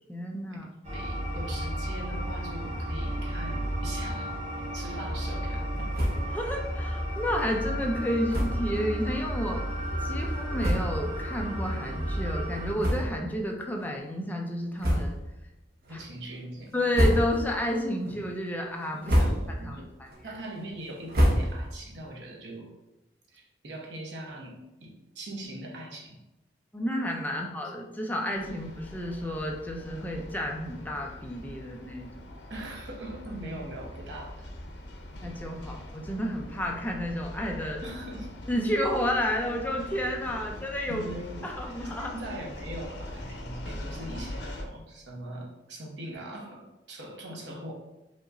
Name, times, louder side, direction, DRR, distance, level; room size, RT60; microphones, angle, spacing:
voice 1, 0.1-0.7 6.3-9.7 10.0-15.2 16.7-19.1 19.6-19.8 26.7-32.3 35.2-37.8 38.5-41.0 41.4-42.1, equal, 10° left, 0 dB, 0.5 m, -31 dB
sound 1, 0.8-12.7, equal, 40° right, 1.1 m, -32 dB
voice 2, 0.9-4.4 4.7-5.9 15.9-16.8 18.0-18.2 18.9-19.9 20.2-22.7 23.3-26.2 27.4-27.5 28.3-28.4 32.5-34.5 37.8-38.3 40.4-47.7, right 1 dB, 85° right, -1 dB, 1.0 m, -41 dB
sound 2, 5.9-6.4 6.7-6.8 7.1-7.3 8.3-8.7 9.4-9.5 10.2-10.3 10.6-11.1 11.7-11.8 12.7-13.4 13.8-13.9 14.8-15.4 15.8-16.2 16.7-17.6 18.0-18.4 18.8-19.7 20.0-21.9, equal, 60° right, 0.9 m, -27 dB
sound 3, 28.3-44.6, left 1 dB, 80° left, 0.7 m, -42 dB
5.1 x 2.9 x 2.6 m, 0.96 s
head